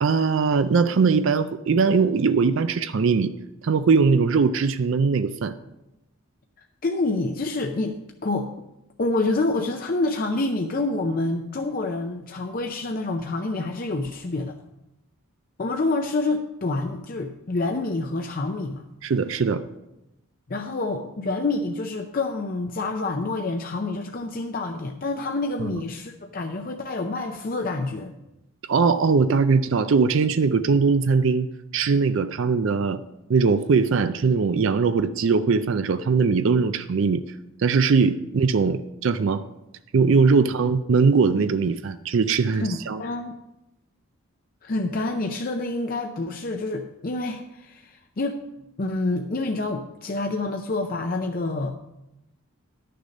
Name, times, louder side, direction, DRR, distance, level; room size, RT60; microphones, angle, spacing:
voice 1, 0.0-3.3 3.6-5.5 19.0-19.6 28.7-33.0 33.3-37.2 37.6-39.4 39.9-43.0, right 5 dB, 60° right, 11 dB, 0.4 m, -21 dB
voice 2, 6.8-8.7 9.0-14.6 15.6-18.9 20.5-28.1 42.6-43.4 44.6-48.4 48.8-51.7, left 2 dB, 40° left, 4 dB, 0.5 m, -27 dB
11.5 x 6.8 x 5.2 m, 0.92 s
head